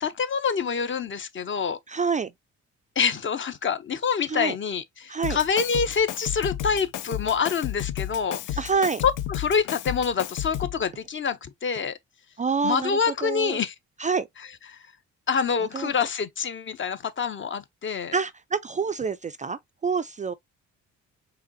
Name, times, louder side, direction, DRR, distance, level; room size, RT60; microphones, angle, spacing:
voice 1, 0.0-1.8 3.0-8.6 9.0-12.0 12.6-13.7 14.7-14.8 15.3-18.1, left 6 dB, 40° left, 0.7 m, -26 dB
voice 2, 1.9-2.3 4.3-4.6 5.1-5.4 8.6-9.0 12.4-13.6 14.0-14.3 15.7-15.9 18.1-20.3, right 5 dB, 25° right, 0.3 m, -27 dB
Drum kit, 5.2-10.8, left 12 dB, 85° left, 0.5 m, -32 dB
4.9 x 3.1 x 2.6 m
cardioid pair, 90°, 30 cm